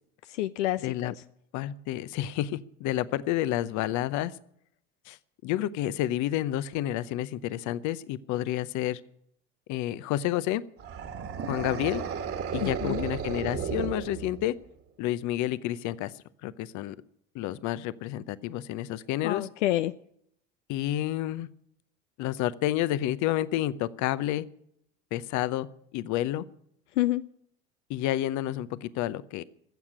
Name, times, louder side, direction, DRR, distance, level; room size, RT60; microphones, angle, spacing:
voice 1, 0.3-1.2 12.6-13.1 19.2-20.0 27.0-27.2, left 15 dB, 85° left, 13 dB, 0.5 m, -28 dB
voice 2, 1.5-4.4 5.1-5.2 5.4-9.0 9.7-10.6 11.5-12.0 12.5-14.5 15.0-16.1 16.4-16.9 17.3-19.4 20.7-21.5 22.2-24.5 25.1-26.4 27.9-29.4, left 13 dB, 55° left, 17 dB, 0.8 m, -30 dB
sound 1, 10.8-14.7, right 7 dB, 40° right, 1.7 m, -34 dB
15.0 x 7.3 x 9.8 m, 0.72 s
hypercardioid pair, 80°, 35 cm